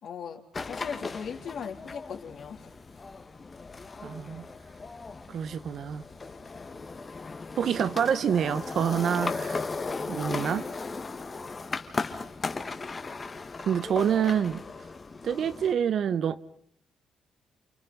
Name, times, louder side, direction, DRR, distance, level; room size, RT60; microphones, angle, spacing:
voice 1, 0.0-2.7 12.0-12.3, left 7 dB, 65° left, 3.8 m, -39 dB
sound 1, 0.5-15.7, left 4 dB, 30° left, 1.9 m, -37 dB
voice 2, 4.0-4.4 5.3-6.0 7.6-9.7 10.1-10.7 13.6-14.6 15.2-16.4, right 8 dB, 60° right, 1.2 m, -27 dB
29.0 x 28.0 x 5.5 m
cardioid pair, 90°, 0 cm